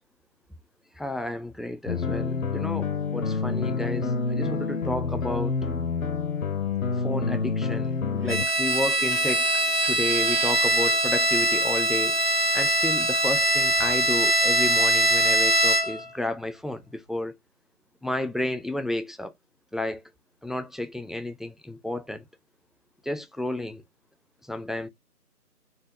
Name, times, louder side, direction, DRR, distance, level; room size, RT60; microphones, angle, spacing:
voice 1, 0.9-5.6 7.0-9.5 9.8-12.2 12.5-17.3 18.0-19.3 19.7-20.0 20.4-22.2 23.0-23.8 24.4-24.9, left 1 dB, ahead, 0.4 m, -31 dB
sound 1, 1.9-8.5, left 4 dB, 60° left, 0.6 m, -28 dB
Bowed string instrument, 8.3-16.1, right 1 dB, 40° right, 0.8 m, -22 dB
4.0 x 2.3 x 3.9 m
figure-of-eight pair, 165°, 47 cm